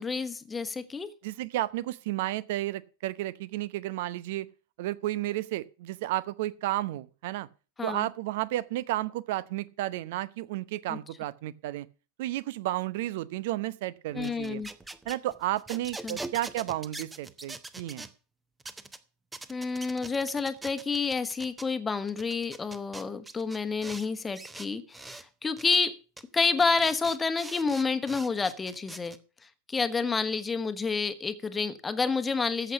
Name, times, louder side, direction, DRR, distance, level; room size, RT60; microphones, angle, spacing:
voice 1, 0.0-1.1 7.8-8.1 10.9-11.0 14.1-14.7 16.0-16.2 19.5-26.0 26.3-29.2 29.7-32.7, left 4 dB, 15° left, 1.3 m, -29 dB
voice 2, 1.2-4.5 4.8-7.5 7.8-11.9 12.2-14.6 15.0-18.1, right 15 dB, 50° right, 0.8 m, -32 dB
sound 1, 14.1-18.1 18.6-19.0 19.3-21.7 22.1-24.1 24.3-25.2 25.6-25.8 26.2-26.3 26.6-29.2, right 2 dB, 10° right, 0.9 m, -43 dB
14.0 x 8.1 x 5.8 m
figure-of-eight pair, 90°, 0 cm